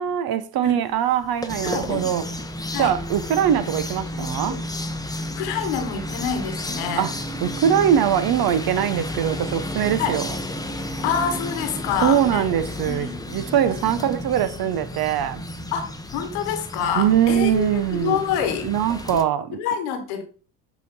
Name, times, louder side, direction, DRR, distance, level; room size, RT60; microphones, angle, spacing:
voice 1, 0.0-2.2 2.8-4.6 7.0-7.1 7.4-10.3 12.0-15.4 17.0-18.2 18.6-19.6, right 9 dB, 50° right, 0.8 m, -22 dB
sound 1, 1.1-19.2, left 1 dB, 10° left, 0.8 m, -32 dB
voice 2, 1.6-2.1 2.7-2.9 4.1-4.6 5.3-7.1 10.0-10.2 11.0-12.4 12.8-13.2 13.6-13.7 15.7-18.7 19.1-19.2 19.6-20.2, left 7 dB, 75° left, 1.4 m, -27 dB
8.1 x 3.0 x 4.0 m
hypercardioid pair, 60°, 47 cm